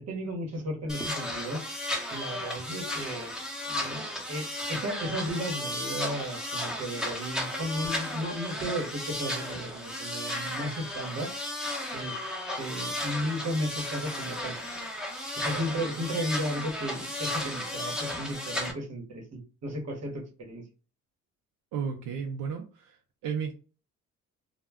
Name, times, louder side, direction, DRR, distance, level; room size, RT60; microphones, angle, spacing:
voice 1, 0.1-1.6 2.1-3.4 3.7-11.3 11.9-12.2 12.6-14.6 15.4-20.6, equal, 60° right, 1 dB, 1.0 m, -34 dB
sound 1, 0.9-18.7, left 1 dB, ahead, 0.8 m, -34 dB
voice 2, 21.7-23.0 23.2-23.5, right 6 dB, 85° right, 2 dB, 0.5 m, -33 dB
2.2 x 2.1 x 3.4 m, 0.36 s
cardioid pair, 90°, 30 cm